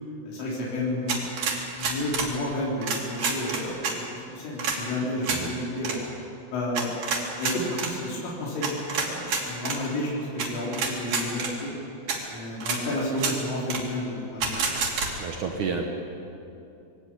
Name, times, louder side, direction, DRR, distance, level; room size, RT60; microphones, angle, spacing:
voice 1, 0.2-1.2 1.8-6.0 6.5-6.9 7.4-11.7 12.3-14.6, left 1 dB, 90° left, -5 dB, 6.4 m, -31 dB
sound 1, 1.1-2.3 2.8-4.0 4.6-4.8 5.2-5.4 5.8-6.0 6.8-7.9 8.6-9.8 10.4-10.5 10.7-11.5 12.1-12.2 12.6-12.8 13.2-13.4 13.7-13.8 14.4-15.1, right 5 dB, 50° right, 3.8 m, -28 dB
voice 2, 15.2-15.8, right 5 dB, 80° right, 2 dB, 1.7 m, -30 dB
22.0 x 17.0 x 8.6 m, 2.7 s
omnidirectional pair, 5.5 m